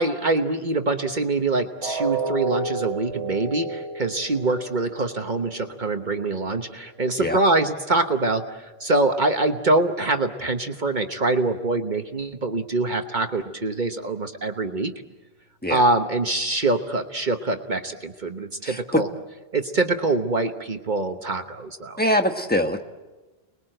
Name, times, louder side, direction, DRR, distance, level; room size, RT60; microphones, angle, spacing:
voice 1, 0.0-14.9 15.7-19.1 19.5-22.0, right 2 dB, 50° right, 6 dB, 1.2 m, -24 dB
sound 1, 1.8-7.8 8.2-8.4 8.8-8.9, right 3 dB, 35° right, 1.5 m, -32 dB
voice 2, 18.6-19.0 22.0-22.8, left 1 dB, 10° left, 4 dB, 1.4 m, -23 dB
29.5 x 21.0 x 7.8 m, 1.2 s
omnidirectional pair, 1.0 m